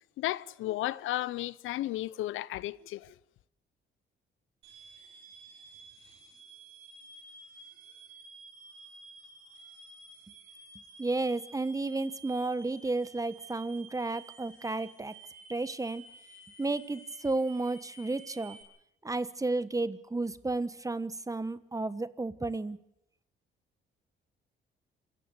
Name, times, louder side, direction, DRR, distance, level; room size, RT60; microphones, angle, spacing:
voice 1, 0.2-3.1, left 15 dB, 85° left, 0.8 m, -34 dB
sound 1, 4.6-18.6, right 3 dB, 90° right, 7.7 m, -53 dB
voice 2, 11.0-15.1 15.5-16.0 16.6-18.6 19.0-22.8, right 2 dB, 15° right, 1.3 m, -32 dB
26.5 x 16.0 x 8.1 m
cardioid pair, 90°, 20 cm